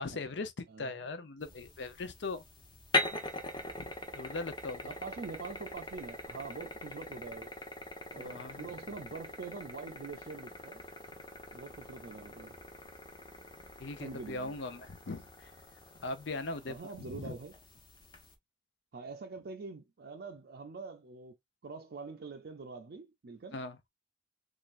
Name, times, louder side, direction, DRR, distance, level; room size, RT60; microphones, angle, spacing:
voice 1, 0.0-2.4 3.8-3.9 4.2-4.9 8.2-8.7 13.8-15.5 16.0-17.3 23.5-23.8, left 3 dB, 65° left, 0.7 m, -40 dB
voice 2, 0.7-1.1 4.9-7.5 8.1-10.8 11.5-12.6 14.0-14.6 16.7-17.6 18.9-21.4 21.6-23.6, right 4 dB, 55° right, 0.5 m, -45 dB
sound 1, 1.4-18.3, left 2 dB, 25° left, 0.8 m, -42 dB
3.7 x 3.3 x 2.5 m
head